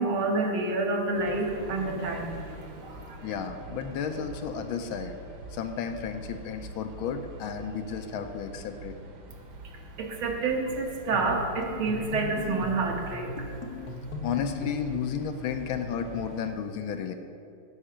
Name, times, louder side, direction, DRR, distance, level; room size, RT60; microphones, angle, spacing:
voice 1, 0.0-2.3 2.8-3.2 10.0-13.3, right 3 dB, 75° right, 1 dB, 1.9 m, -28 dB
sound 1, 1.1-16.5, right 3 dB, 60° right, 1.6 m, -45 dB
voice 2, 3.2-5.2 5.5-9.0 14.2-17.1, left 7 dB, 80° left, 7 dB, 1.4 m, -33 dB
sound 2, 11.1-15.0, left 2 dB, 60° left, 1.2 m, -38 dB
11.5 x 5.6 x 5.0 m, 2.6 s
omnidirectional pair, 2.3 m